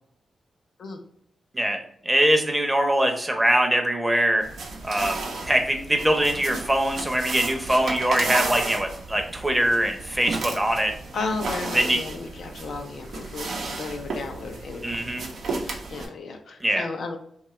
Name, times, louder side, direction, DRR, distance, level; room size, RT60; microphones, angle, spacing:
voice 1, 2.0-4.4 4.8-5.2 5.5-10.9 11.7-12.0 14.8-15.2 16.6-16.8, right 1 dB, 15° right, 4 dB, 0.7 m, -22 dB
sound 1, 4.4-16.1, right 3 dB, 80° right, 0.6 m, -33 dB
voice 2, 11.1-15.0 15.5-17.2, left 3 dB, 75° left, 4 dB, 0.4 m, -34 dB
2.7 x 2.3 x 3.0 m, 0.69 s
cardioid pair, 50°, 0 cm